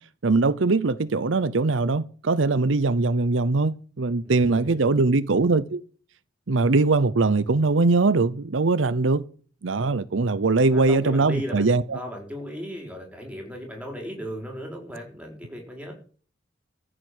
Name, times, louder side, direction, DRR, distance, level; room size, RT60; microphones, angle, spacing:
voice 1, 0.2-5.8 6.5-9.2 9.6-12.0, right 3 dB, 80° right, 0.7 m, -21 dB
voice 2, 4.2-5.0 10.7-15.9, equal, 5° right, 5.3 m, -36 dB
14.0 x 7.6 x 8.0 m
head